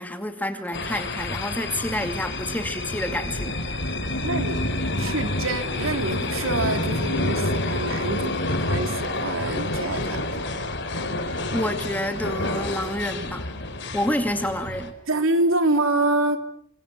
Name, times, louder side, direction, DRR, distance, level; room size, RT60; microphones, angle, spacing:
voice 1, 0.0-3.6 11.3-13.5 13.9-14.9, left 1 dB, 10° left, 7 dB, 2.3 m, -28 dB
sound 1, 0.7-14.9, left 2 dB, 55° left, 3.8 m, -28 dB
voice 2, 4.2-4.6 4.9-10.2 15.1-16.4, right 2 dB, 75° right, 7 dB, 3.3 m, -26 dB
29.0 x 25.0 x 6.0 m, 0.65 s
head